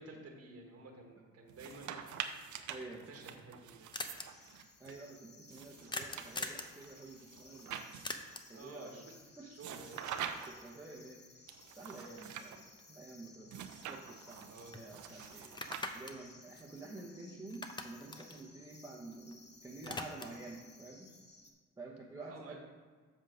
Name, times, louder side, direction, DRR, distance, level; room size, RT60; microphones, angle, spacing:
voice 1, 0.0-2.0 2.9-3.9 8.4-9.1 9.4-10.1 14.4-15.0 22.3-22.6, right 2 dB, 50° right, 1 dB, 1.4 m, -52 dB
sound 1, 1.5-4.9 5.5-8.4 9.6-10.7 11.5-12.6 13.5-16.3, right 8 dB, 75° right, 0.7 m, -46 dB
voice 2, 2.7-3.0 4.8-7.8 8.5-9.0 9.4-9.8 10.3-11.4 11.8-15.6 15.9-21.1 21.8-22.6, right 2 dB, 10° right, -5 dB, 1.0 m, -50 dB
sound 2, 3.3-3.4 3.5-3.6 3.9-4.3 5.9-6.7 8.0-8.6 12.8-12.9 13.3-14.4 14.7-14.9 15.4-17.2 17.5-19.3 19.6-20.5, left 2 dB, 15° left, 0.6 m, -43 dB
sound 3, 4.1-21.5, left 3 dB, 35° left, 1.2 m, -60 dB
7.5 x 3.6 x 6.2 m, 1.5 s
cardioid pair, 90°, 30 cm